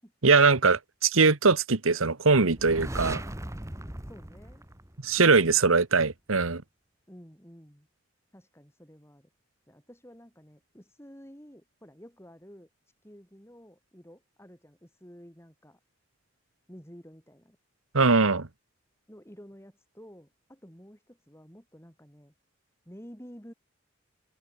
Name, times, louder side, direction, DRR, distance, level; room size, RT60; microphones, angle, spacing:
voice 1, 0.2-3.2 5.0-6.6 17.9-18.5, right 4 dB, 85° right, 1.4 m, -21 dB
sound 1, 2.5-5.4, right 1 dB, 15° right, 1.6 m, -38 dB
voice 2, 2.9-3.4 4.1-4.7 5.3-5.8 7.1-7.9 8.3-9.3 9.7-12.7 13.0-15.8 16.7-17.6 19.1-22.3 22.9-23.5, equal, 10° left, 7.9 m, -51 dB
open air
head